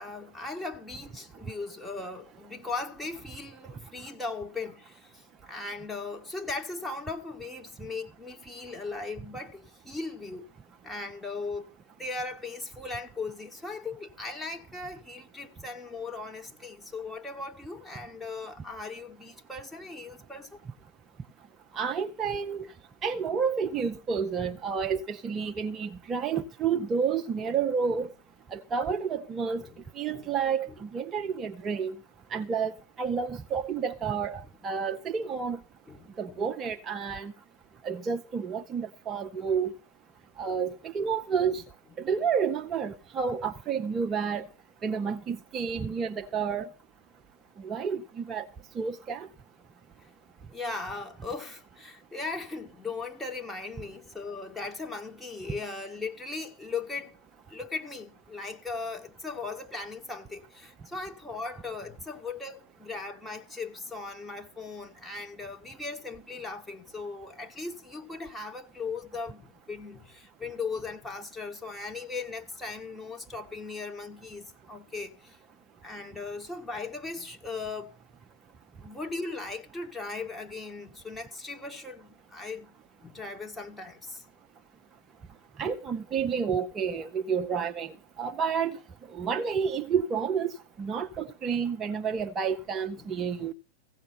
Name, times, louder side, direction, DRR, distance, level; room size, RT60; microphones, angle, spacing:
voice 1, 0.0-10.4 10.8-11.7 12.0-20.6 27.4-27.6 27.9-28.0 29.6-29.8 30.1-30.3 30.7-30.8 35.9-36.4 40.4-40.6 41.0-41.1 41.5-41.6 42.0-42.1 50.0-50.1 50.5-57.2 57.5-75.4 75.8-78.0 78.8-82.7 83.0-84.2 93.0-93.5, left 3 dB, 5° left, 1.5 m, -38 dB
voice 2, 21.7-22.7 23.0-28.1 28.5-29.6 30.0-32.0 32.3-35.6 36.2-37.3 37.8-39.7 40.4-41.6 42.0-44.5 44.8-46.7 47.6-48.5 48.8-49.3 85.6-87.9 88.2-88.8 89.1-93.5, right 6 dB, 25° right, 0.6 m, -30 dB
16.0 x 6.4 x 5.9 m
figure-of-eight pair, 90°, 0 cm